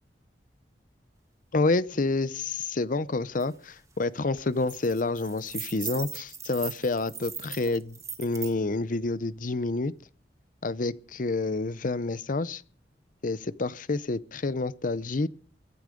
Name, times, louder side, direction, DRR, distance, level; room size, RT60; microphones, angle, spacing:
voice 1, 1.5-9.9 10.6-12.6 13.2-15.3, left 3 dB, 50° left, 0.7 m, -28 dB
sound 1, 3.4-3.5 3.8-4.0 4.4-8.5, right 6 dB, 20° right, 1.5 m, -39 dB
22.5 x 10.0 x 5.1 m
head